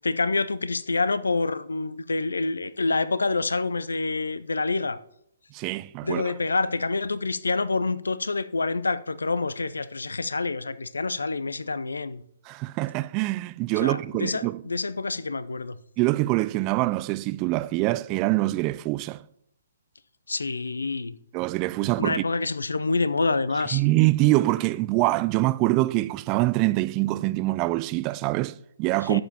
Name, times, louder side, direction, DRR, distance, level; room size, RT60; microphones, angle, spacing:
voice 1, 0.0-5.0 6.0-12.2 13.8-15.8 20.3-21.1 22.0-23.8 29.0-29.2, left 3 dB, 75° left, 0.5 m, -27 dB
voice 2, 5.5-6.3 12.5-14.6 16.0-19.2 21.3-22.2 23.7-29.2, right 19 dB, 30° right, 0.3 m, -24 dB
11.5 x 7.6 x 2.9 m
figure-of-eight pair, 130°, 0 cm